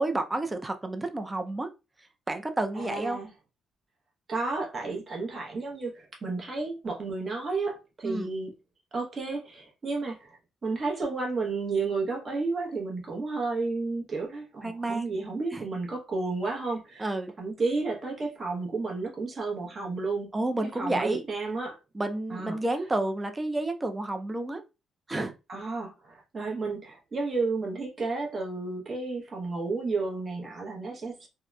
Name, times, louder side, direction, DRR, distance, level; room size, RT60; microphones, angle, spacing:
voice 1, 0.0-1.7 2.3-3.2 8.0-8.3 14.6-15.1 15.5-15.6 17.0-17.3 20.3-21.3 21.9-24.6 25.1-25.3, right 2 dB, 20° right, 0.4 m, -30 dB
voice 2, 2.7-3.3 4.3-8.5 8.9-20.3 20.7-21.8 22.3-22.6 25.5-31.3, right 3 dB, 40° right, 0.9 m, -32 dB
2.8 x 2.1 x 2.3 m
cardioid pair, 90°, 0 cm